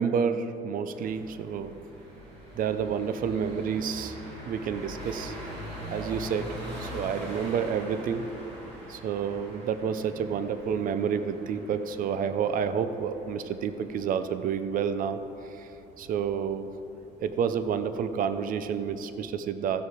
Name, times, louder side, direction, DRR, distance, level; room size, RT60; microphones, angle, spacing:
voice 1, 0.0-1.8 2.5-4.2 4.5-5.3 5.9-8.3 8.9-16.7 17.2-19.9, right 7 dB, 55° right, 11 dB, 0.6 m, -29 dB
sound 1, 0.9-19.2, equal, 90° right, 2.6 m, -44 dB
14.5 x 6.6 x 4.6 m, 2.9 s
cardioid pair, 110°, 17 cm